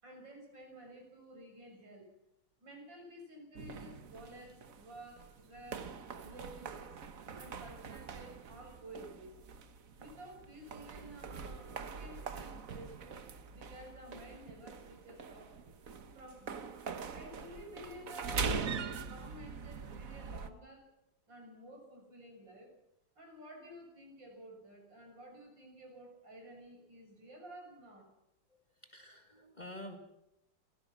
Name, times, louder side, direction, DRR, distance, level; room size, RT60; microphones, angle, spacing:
voice 1, 0.0-2.1 2.6-7.0 7.4-9.3 10.0-13.2 13.5-15.5 16.1-16.8 17.1-20.9 21.3-22.7 23.2-28.1, right 1 dB, 80° right, 2 dB, 7.3 m, -52 dB
Stairway walk, 3.6-20.5, right 5 dB, 50° right, 1.5 m, -43 dB
voice 2, 28.8-30.0, left 1 dB, 25° left, 5 dB, 2.0 m, -48 dB
29.5 x 16.0 x 6.2 m, 0.87 s
omnidirectional pair, 2.0 m